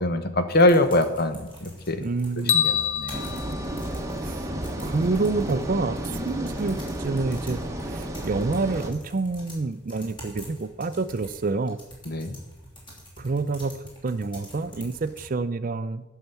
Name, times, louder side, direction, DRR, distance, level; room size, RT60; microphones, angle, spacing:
voice 1, 0.0-2.0 2.5-3.3 12.1-12.4, left 1 dB, 50° left, 9 dB, 1.0 m, -23 dB
sound 1, 0.5-15.3, equal, 25° left, 2.9 m, -47 dB
voice 2, 2.0-2.6 4.2-4.4 4.8-11.8 13.2-16.0, right 3 dB, 40° right, 14 dB, 0.4 m, -28 dB
sound 2, 2.5-4.7, left 8 dB, 80° left, 1.0 m, -27 dB
sound 3, 3.1-8.9, right 1 dB, 15° right, 1.0 m, -32 dB
11.0 x 5.7 x 6.9 m, 1.2 s
head